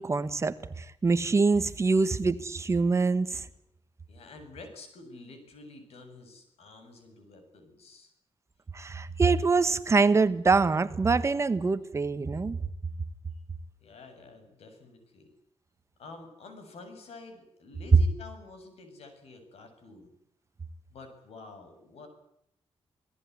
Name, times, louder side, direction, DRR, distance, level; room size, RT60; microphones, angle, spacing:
voice 1, 0.0-3.5 8.7-12.6, right 4 dB, 30° right, 12 dB, 1.4 m, -25 dB
voice 2, 4.1-8.1 13.8-15.3 16.0-20.1 20.9-22.1, left 3 dB, 85° left, 7 dB, 7.7 m, -49 dB
27.5 x 18.0 x 9.7 m, 0.73 s
wide cardioid pair, 155°, 10 cm